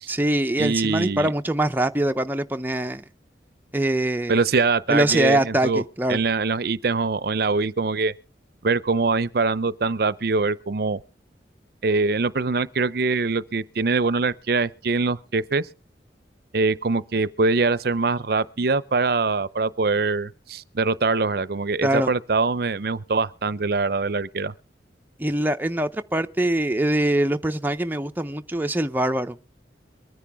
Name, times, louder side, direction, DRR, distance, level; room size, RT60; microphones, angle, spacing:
voice 1, 0.1-3.0 3.7-4.4 4.9-6.2 21.8-22.1 25.2-29.4, right 1 dB, 10° right, 0.5 m, -23 dB
voice 2, 0.6-1.3 4.3-5.8 6.1-8.1 8.6-11.0 11.8-15.7 16.5-24.5, right 4 dB, 55° right, 0.6 m, -23 dB
23.0 x 10.0 x 3.4 m
head